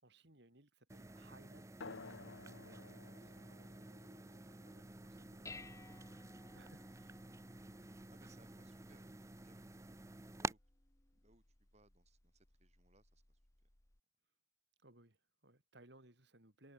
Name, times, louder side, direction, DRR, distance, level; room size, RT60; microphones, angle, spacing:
voice 1, 0.0-2.0 2.5-7.2 7.8-8.0 8.6-8.7 14.8-16.7, right 1 dB, 60° right, 4.4 m, -65 dB
sound 1, 0.9-10.5, right 2 dB, 15° right, 0.6 m, -50 dB
sound 2, 1.8-6.8, left 4 dB, 75° left, 1.1 m, -56 dB
Dishes pots and pans, 4.8-14.0, left 3 dB, 15° left, 0.9 m, -61 dB
voice 2, 7.8-10.0 10.4-10.6 11.1-13.7, right 2 dB, 35° right, 4.0 m, -70 dB
head